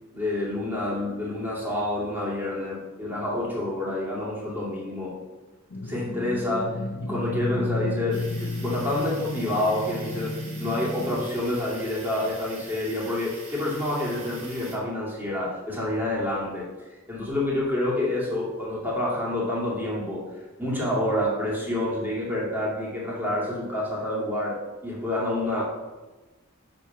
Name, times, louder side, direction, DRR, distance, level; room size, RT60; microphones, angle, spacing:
voice 1, 0.1-5.2 5.8-20.3 20.6-25.7, left 1 dB, 10° right, -6 dB, 2.4 m, -28 dB
sound 1, 5.7-11.2, left 2 dB, 70° left, 0.6 m, -32 dB
sound 2, 8.1-14.8, right 2 dB, 35° right, 2.2 m, -44 dB
7.3 x 5.4 x 5.8 m, 1.2 s
head